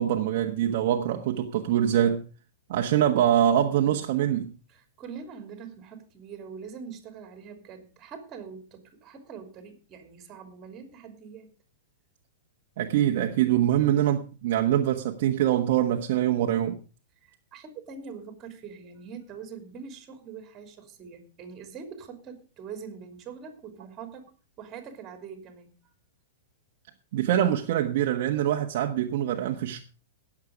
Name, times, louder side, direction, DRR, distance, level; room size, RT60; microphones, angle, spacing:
voice 1, 0.0-2.2 2.7-4.5 12.8-16.8 27.1-29.8, right 11 dB, 50° right, 1.2 m, -24 dB
voice 2, 4.7-11.5 17.1-25.7, right 6 dB, 20° right, 3.0 m, -43 dB
18.5 x 7.4 x 5.2 m
supercardioid pair, 165°, 0 cm